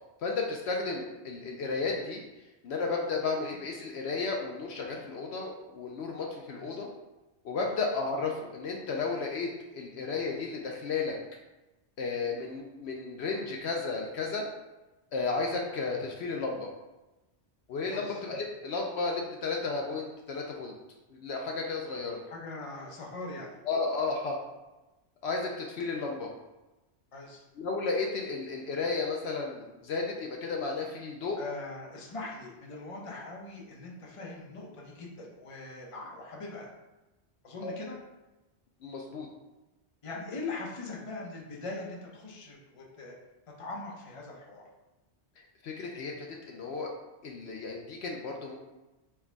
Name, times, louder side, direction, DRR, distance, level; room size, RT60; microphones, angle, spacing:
voice 1, 0.2-2.2 2.6-6.9 7.4-11.2 12.0-14.5 15.1-16.7 17.7-20.7 21.1-22.2 23.6-24.4 25.2-26.3 27.6-31.4 37.6-37.7 38.8-39.3 45.6-46.9 47.2-48.6, left 4 dB, 70° left, 0 dB, 0.8 m, -33 dB
voice 2, 6.5-6.8 7.6-7.8 17.9-18.2 22.3-23.6 27.1-27.4 31.4-36.7 37.4-38.0 40.0-43.1 43.6-44.6, left 3 dB, 35° left, -2 dB, 0.7 m, -41 dB
4.5 x 2.3 x 4.4 m, 1.0 s
omnidirectional pair, 1.2 m